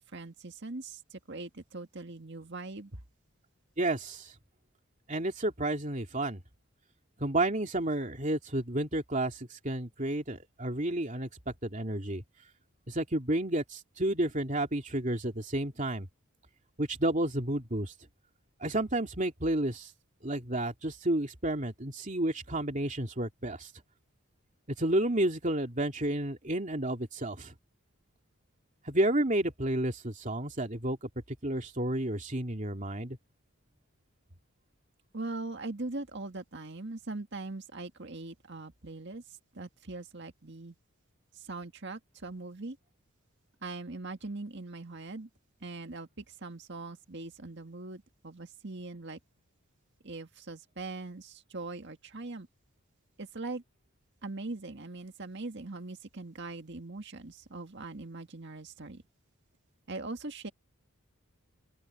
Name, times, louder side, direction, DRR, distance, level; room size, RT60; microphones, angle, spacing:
voice 1, 0.0-2.9 35.1-39.2 39.5-40.8 41.4-42.8 43.6-45.3 45.6-49.2 50.0-52.5 53.2-53.6 54.2-59.0 59.9-60.5, right 2 dB, 55° right, 1.9 m, -41 dB
voice 2, 3.8-4.3 5.1-6.4 7.2-12.2 12.9-16.1 16.8-17.9 18.6-19.9 20.2-23.7 24.8-27.5 28.8-33.2, right 1 dB, 35° right, 3.0 m, -31 dB
open air
head